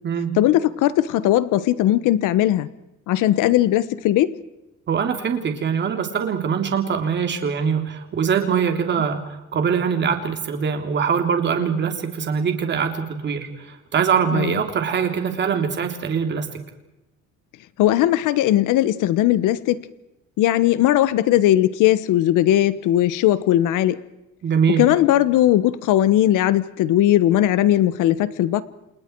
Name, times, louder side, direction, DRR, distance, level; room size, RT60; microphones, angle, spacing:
voice 1, 0.4-2.7 3.1-4.4 14.3-14.6 17.8-19.8 20.4-24.0 24.8-28.6, left 13 dB, 85° left, 15 dB, 1.2 m, -18 dB
voice 2, 4.9-16.5 24.4-24.8, right 7 dB, 35° right, 5 dB, 3.3 m, -23 dB
30.0 x 28.0 x 4.7 m, 0.93 s
cardioid pair, 170°, 30 cm